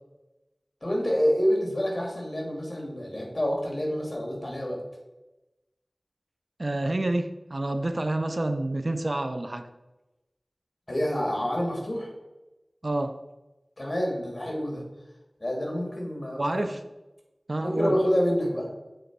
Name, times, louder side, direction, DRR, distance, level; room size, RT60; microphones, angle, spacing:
voice 1, 0.8-4.8 10.9-12.1 13.8-14.8 15.4-16.7 17.6-18.7, equal, 40° left, 0 dB, 2.4 m, -27 dB
voice 2, 6.6-9.7 12.8-13.2 16.4-16.8 17.5-18.0, right 2 dB, 55° right, 8 dB, 0.5 m, -28 dB
7.8 x 3.8 x 4.7 m, 1.0 s
wide cardioid pair, 45°, 0 cm